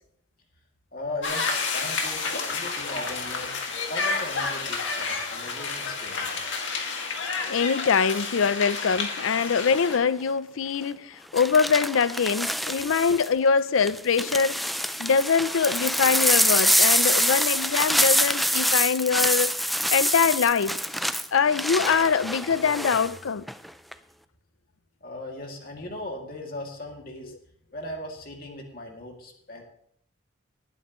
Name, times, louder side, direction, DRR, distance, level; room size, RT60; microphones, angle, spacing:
voice 1, 0.9-6.4 22.4-22.8 23.1-23.2 25.0-27.3 27.7-29.6, left 1 dB, 45° left, 2.5 m, -38 dB
sound 1, 1.2-10.0, left 4 dB, 70° left, 2.1 m, -30 dB
voice 2, 7.4-14.7 15.0-19.5 19.9-20.8 21.3-23.4, left 6 dB, 90° left, 0.5 m, -23 dB
sound 2, 9.7-10.0 11.4-13.3 13.8-23.1 23.5-23.9, equal, ahead, 0.3 m, -25 dB
20.0 x 9.3 x 3.1 m
head